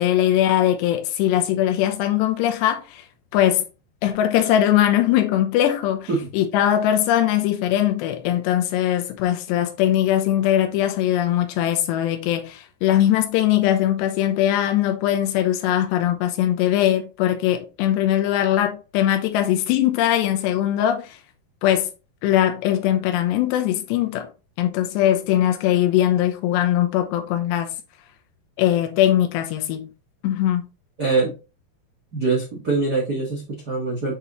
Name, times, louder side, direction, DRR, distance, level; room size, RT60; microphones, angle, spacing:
voice 1, 0.0-3.0 3.3-3.7 4.0-21.2 21.6-21.9 22.2-24.3 24.6-27.7 28.6-29.9 30.2-30.6, left 12 dB, 90° left, 3.0 m, -21 dB
voice 2, 31.0-31.3 32.1-34.1, right 3 dB, 75° right, 0.9 m, -23 dB
8.0 x 4.1 x 3.0 m
omnidirectional pair, 4.8 m